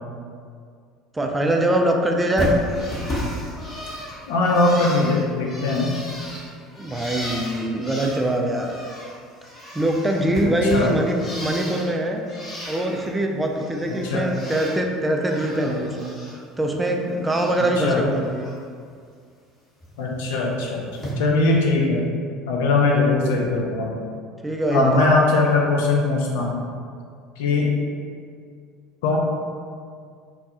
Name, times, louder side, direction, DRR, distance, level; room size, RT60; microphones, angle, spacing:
voice 1, 1.1-2.5 6.8-8.7 9.7-12.2 12.7-16.2 16.6-18.5 24.4-25.1, right 1 dB, 15° right, 2 dB, 0.3 m, -23 dB
Bird, 2.4-9.2 9.4-11.9 12.3-13.1 13.4-14.8 15.1-16.3 16.7-17.7 18.1-18.5 19.8-19.9 20.9-21.1, equal, 30° left, 0.9 m, -34 dB
voice 2, 4.3-5.9 10.7-10.9 14.0-14.3 17.8-18.0 20.0-20.8 21.2-22.1 22.5-23.9 24.7-26.6 27.4-27.7 29.0-29.2, left 3 dB, 70° left, -2 dB, 0.4 m, -20 dB
2.2 x 2.2 x 2.7 m, 2.2 s
figure-of-eight pair, 65°, 0 cm